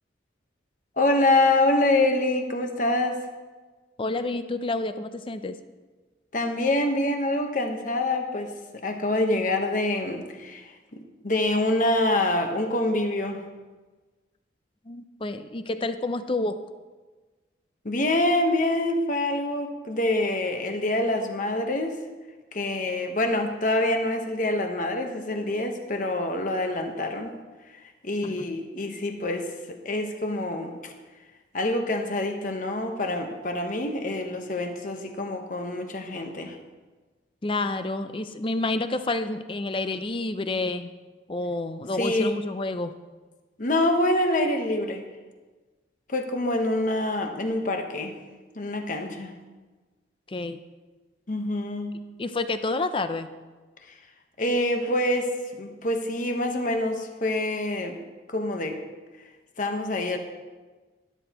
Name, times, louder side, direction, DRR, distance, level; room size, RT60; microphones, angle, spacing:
voice 1, 1.0-3.2 6.3-8.5 8.8-10.7 11.2-13.4 17.8-22.0 22.5-27.3 28.0-30.9 31.5-36.6 42.0-42.4 43.6-45.0 46.1-48.1 48.6-49.3 51.3-52.0 54.4-58.0 58.3-58.8 59.6-60.2, left 1 dB, 45° left, 4 dB, 1.1 m, -26 dB
voice 2, 4.0-5.6 14.8-16.6 28.2-28.5 37.4-40.9 41.3-42.9 50.3-50.6 52.2-53.3, left 2 dB, 30° left, 10 dB, 0.5 m, -29 dB
12.5 x 11.5 x 3.0 m, 1.3 s
head